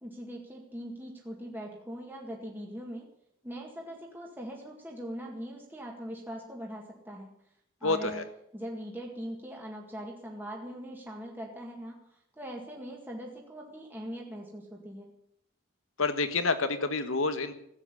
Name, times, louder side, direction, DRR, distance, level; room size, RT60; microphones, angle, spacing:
voice 1, 0.0-3.1 3.4-7.3 7.8-8.2 8.5-12.1 12.3-15.1, equal, 10° right, -1 dB, 2.0 m, -41 dB
voice 2, 7.8-8.2 16.0-17.5, left 3 dB, 80° left, 9 dB, 1.7 m, -28 dB
15.5 x 9.1 x 10.0 m, 0.75 s
head